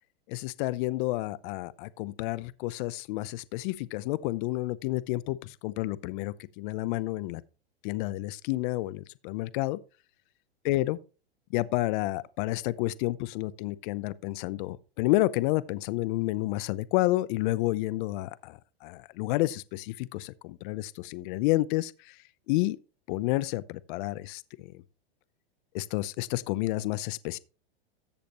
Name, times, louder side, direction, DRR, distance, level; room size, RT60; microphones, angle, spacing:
voice 1, 0.3-7.4 7.8-9.8 10.6-11.0 11.5-22.2 22.5-22.8 23.1-24.8 25.7-27.4, left 18 dB, 55° left, 0.7 m, -30 dB
14.0 x 7.7 x 3.0 m
supercardioid pair, 130°, 31 cm